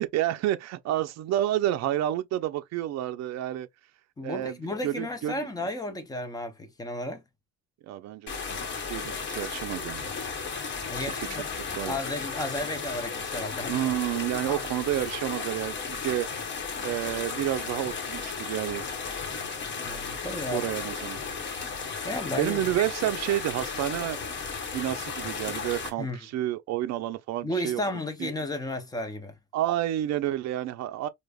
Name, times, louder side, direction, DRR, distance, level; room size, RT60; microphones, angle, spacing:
voice 1, 0.0-3.7 4.2-4.6 4.8-5.5 7.8-8.4 8.9-10.0 11.0-11.3 11.7-12.0 13.6-16.4 16.8-18.8 20.5-21.2 22.4-24.2 24.7-27.8 28.2-28.3 29.5-31.1, right 13 dB, 65° right, 0.5 m, -29 dB
voice 2, 4.2-7.2 10.9-11.5 11.8-13.9 14.5-14.6 19.8-20.7 22.0-22.8 26.0-26.2 27.4-29.3, left 1 dB, 15° left, 0.5 m, -33 dB
sound 1, 8.3-25.9, left 5 dB, 40° left, 0.9 m, -34 dB
5.0 x 2.0 x 2.2 m
cardioid pair, 175°, 30 cm